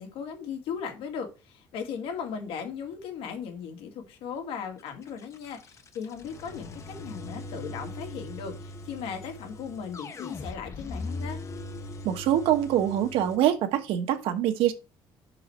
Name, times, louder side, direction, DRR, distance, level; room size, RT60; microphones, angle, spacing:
voice 1, 0.0-11.4, left 7 dB, 80° left, 2.1 m, -37 dB
sound 1, 4.8-13.4, left 2 dB, 35° left, 1.0 m, -40 dB
voice 2, 12.0-14.7, right 11 dB, 85° right, 1.2 m, -24 dB
6.1 x 4.8 x 5.6 m
cardioid pair, 130°, 9 cm